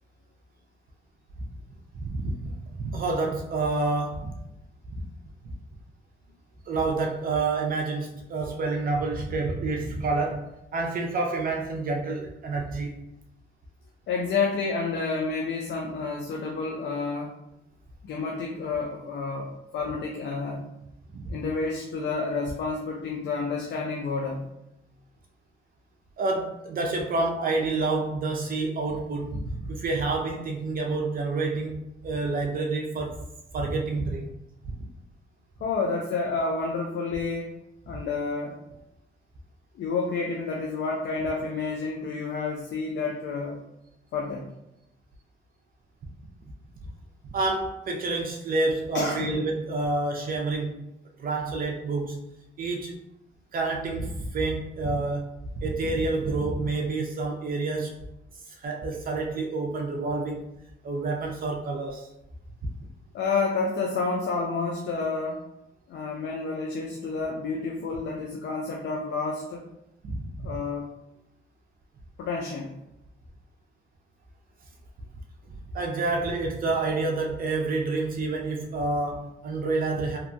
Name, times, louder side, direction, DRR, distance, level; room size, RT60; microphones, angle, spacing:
voice 1, 1.9-4.3 4.9-5.0 6.7-13.0 21.1-21.4 26.2-33.2 33.5-34.7 37.9-38.0 47.3-50.9 51.2-52.3 52.6-53.0 53.5-58.0 58.5-60.4 60.8-62.1 70.1-70.5 75.7-80.2, right 3 dB, 45° right, 1 dB, 0.5 m, -28 dB
voice 2, 14.1-17.3 18.0-20.6 21.3-24.5 35.6-37.6 37.9-38.6 39.7-43.6 44.1-44.5 48.9-49.3 63.1-65.4 65.9-69.7 70.4-70.9 72.2-72.8, left 4 dB, 65° left, 0 dB, 0.5 m, -29 dB
2.8 x 2.2 x 2.6 m, 0.85 s
cardioid pair, 90°, 20 cm